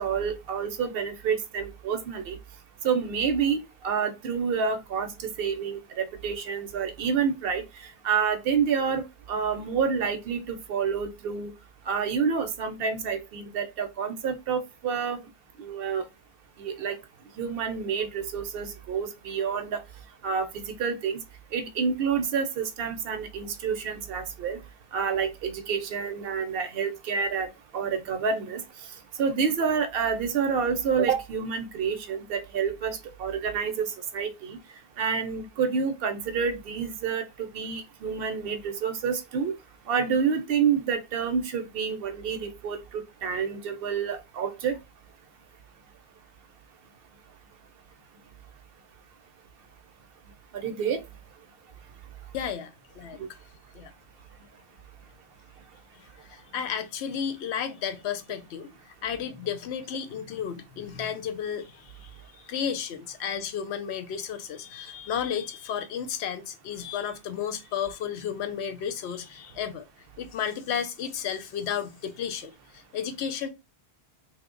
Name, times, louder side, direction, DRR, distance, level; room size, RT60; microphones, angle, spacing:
voice 1, 0.0-2.4 2.8-3.6 3.8-7.6 8.0-11.5 11.9-15.2 15.6-16.0 16.6-17.0 17.4-19.8 20.2-21.2 21.5-24.6 24.9-27.5 27.7-28.6 29.2-34.6 35.0-39.5 39.9-44.8 50.6-51.0 53.2-53.3, right 6 dB, 65° right, 0.7 m, -28 dB
voice 2, 52.3-53.2 53.7-53.9 56.3-58.7 59.0-69.8 70.2-73.5, left 8 dB, 80° left, 0.8 m, -33 dB
3.0 x 2.1 x 3.7 m
omnidirectional pair, 1.1 m